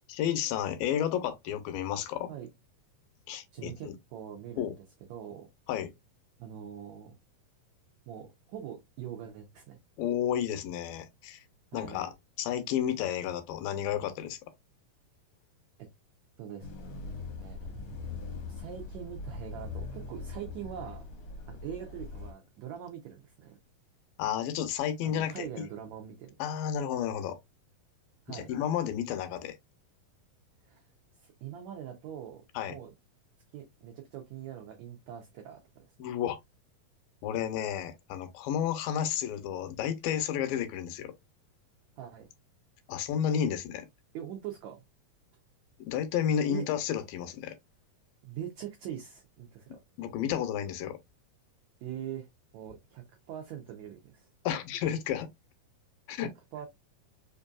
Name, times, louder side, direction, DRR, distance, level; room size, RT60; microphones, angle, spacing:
voice 1, 0.1-2.3 3.3-3.9 4.6-4.7 5.7-5.9 10.0-11.4 11.7-12.1 12.4-14.4 24.2-25.7 26.4-27.4 28.3-29.6 32.6-32.7 36.0-36.4 37.2-41.1 42.9-43.9 45.8-47.6 50.0-51.0 54.5-55.3 56.1-56.3, left 9 dB, 80° left, 2.3 m, -31 dB
voice 2, 3.5-4.8 5.1-5.5 6.4-7.1 8.1-9.8 11.7-12.1 15.8-15.9 16.4-16.7 17.4-17.8 18.5-21.0 21.5-23.6 25.0-26.3 28.3-28.5 30.6-30.8 31.2-32.9 33.5-35.9 42.0-42.3 44.1-44.8 46.5-46.7 48.2-49.8 51.8-52.3 52.5-54.3 56.5-56.7, right 10 dB, 80° right, 1.6 m, -43 dB
sound 1, 16.6-22.3, left 4 dB, 65° left, 1.4 m, -41 dB
5.3 x 2.6 x 2.3 m
omnidirectional pair, 4.1 m